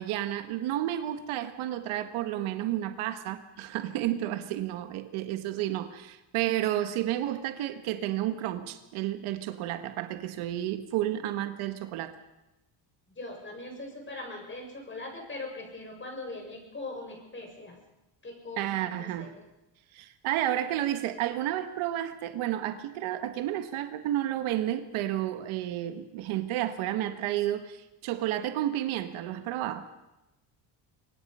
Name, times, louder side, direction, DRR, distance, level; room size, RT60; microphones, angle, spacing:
voice 1, 0.0-12.1 18.6-19.3 19.9-29.9, right 13 dB, 85° right, 9 dB, 1.7 m, -31 dB
voice 2, 13.1-17.8 18.2-19.4, left 2 dB, 25° left, 2 dB, 7.3 m, -41 dB
24.0 x 21.0 x 5.6 m, 0.97 s
cardioid pair, 110°, 47 cm